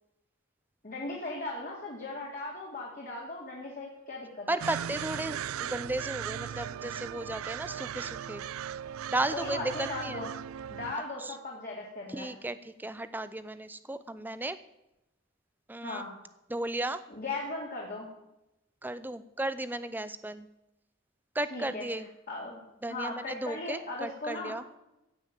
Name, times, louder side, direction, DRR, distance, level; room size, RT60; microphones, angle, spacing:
voice 1, 0.8-4.6 9.3-10.3 10.7-12.3 15.8-16.1 17.1-18.1 21.5-22.6 22.9-24.5, left 2 dB, 40° left, -3 dB, 2.4 m, -38 dB
voice 2, 4.5-8.4 9.1-10.2 11.2-11.3 12.1-14.6 15.7-16.0 16.5-17.0 18.8-20.5 21.3-22.1 22.8-24.6, right 2 dB, 10° right, 13 dB, 0.5 m, -35 dB
sound 1, 4.6-10.9, right 9 dB, 90° right, 0.4 m, -38 dB
15.5 x 5.6 x 8.9 m, 0.91 s
head